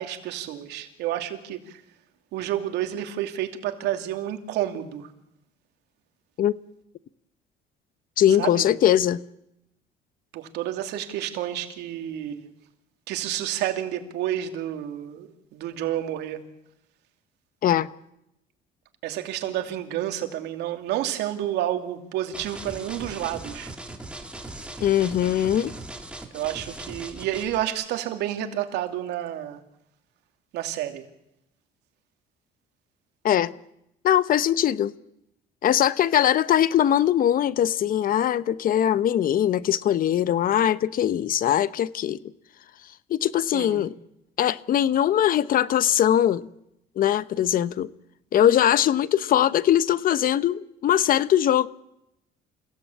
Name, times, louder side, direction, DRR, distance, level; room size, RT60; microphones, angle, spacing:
voice 1, 0.0-1.8 2.3-5.1 8.4-8.6 10.3-12.5 13.1-16.4 19.0-23.7 26.3-29.6 30.5-31.0 43.5-43.8, right 12 dB, 85° right, 2.7 m, -30 dB
voice 2, 8.2-9.2 17.6-17.9 24.8-25.7 33.2-33.5 34.0-34.9 35.6-42.2 43.1-43.9 44.4-46.4 47.0-47.9 48.3-51.7, left 10 dB, 55° left, 1.0 m, -21 dB
sound 1, 22.3-27.7, right 2 dB, 5° right, 3.4 m, -39 dB
29.0 x 16.5 x 8.6 m
cardioid pair, 110°, 17 cm